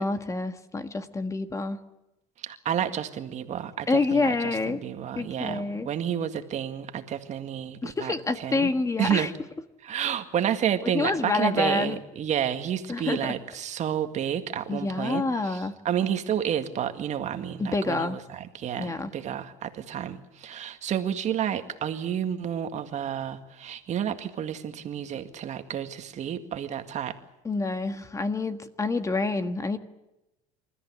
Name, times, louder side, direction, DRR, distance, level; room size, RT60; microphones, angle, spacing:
voice 1, 0.0-1.8 3.9-4.8 5.1-5.9 7.8-9.3 10.9-12.0 12.9-13.4 14.7-15.8 17.6-18.2 18.8-19.1 27.4-29.8, left 3 dB, 20° left, 9 dB, 1.6 m, -27 dB
voice 2, 2.4-8.7 9.0-9.3 9.8-27.2, right 9 dB, 45° right, 7 dB, 1.9 m, -30 dB
27.5 x 14.0 x 9.7 m, 0.95 s
supercardioid pair, 105°, 16 cm